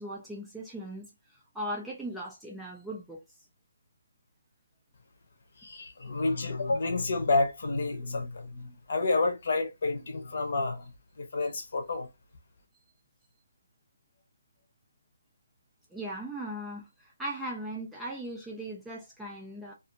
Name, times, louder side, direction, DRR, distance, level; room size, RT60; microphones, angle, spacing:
voice 1, 0.0-3.2 15.9-19.7, right 1 dB, ahead, 0.3 m, -38 dB
voice 2, 5.6-10.9 11.2-12.1, left 3 dB, 45° left, 0.8 m, -29 dB
2.5 x 2.5 x 2.6 m
hypercardioid pair, 175°, 0 cm